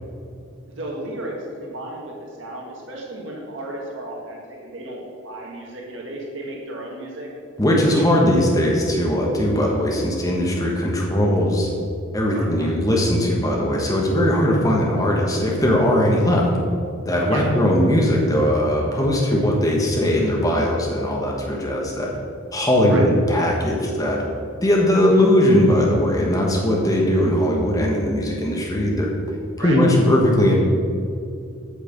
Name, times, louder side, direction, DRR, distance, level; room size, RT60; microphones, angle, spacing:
voice 1, 0.7-7.3 8.0-8.3 12.3-12.8 17.3-17.4 22.8-23.1 24.9-25.2 29.6-29.8, right 1 dB, 60° right, -2 dB, 1.7 m, -34 dB
voice 2, 7.6-11.7 12.1-16.5 17.0-22.1 22.5-24.2 24.6-29.1 29.6-30.6, left 1 dB, 15° left, -2 dB, 1.2 m, -19 dB
8.3 x 6.7 x 5.1 m, 2.5 s
head